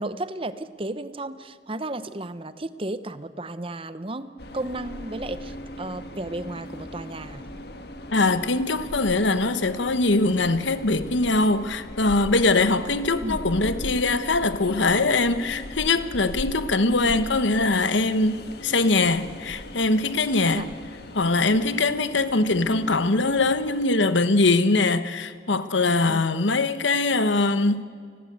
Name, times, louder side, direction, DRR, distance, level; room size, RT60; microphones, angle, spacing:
voice 1, 0.0-7.4 13.2-13.4 16.9-17.0 20.5-20.6 26.1-26.3, right 2 dB, 30° right, 0.8 m, -33 dB
Train, 4.4-23.9, left 1 dB, 55° left, 1.8 m, -38 dB
voice 2, 8.1-20.6 21.1-27.8, left 3 dB, 70° left, 1.1 m, -22 dB
29.5 x 20.0 x 8.2 m
head